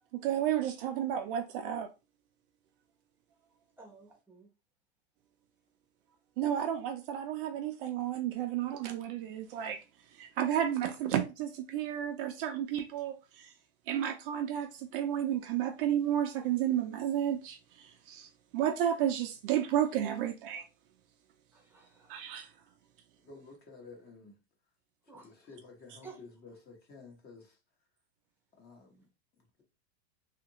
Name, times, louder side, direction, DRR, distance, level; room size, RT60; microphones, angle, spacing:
voice 1, 0.1-1.9 6.4-9.8 10.2-13.5 13.9-20.7 22.1-22.5, right 10 dB, 50° right, 0.4 m, -32 dB
voice 2, 3.8-4.5 21.5-22.2 25.1-25.6 26.0-26.2, right 4 dB, 5° right, 0.7 m, -53 dB
voice 3, 23.2-24.3 25.1-27.6 28.6-29.1, left 4 dB, 25° left, 1.0 m, -52 dB
2.8 x 2.4 x 2.8 m
supercardioid pair, 145°, 34 cm